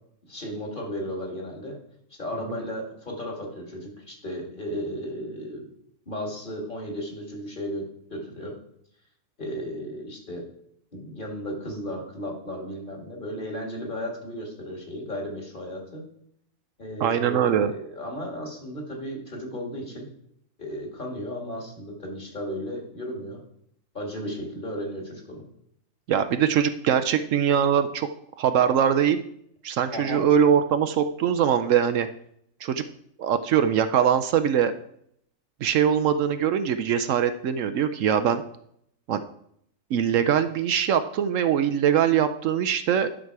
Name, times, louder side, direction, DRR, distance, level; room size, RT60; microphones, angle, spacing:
voice 1, 0.3-1.8 2.2-5.7 6.1-8.5 9.4-10.4 10.9-16.0 16.8-20.1 20.6-23.4 23.9-25.4 29.9-30.2, equal, 35° left, 0 dB, 2.3 m, -34 dB
voice 2, 17.0-17.7 26.1-28.1 28.4-29.2 29.6-32.1 32.6-32.8 33.2-34.7 35.6-38.4 39.1-39.2 39.9-43.1, right 8 dB, 70° right, 9 dB, 0.9 m, -22 dB
11.0 x 6.2 x 4.7 m, 0.71 s
omnidirectional pair, 1.4 m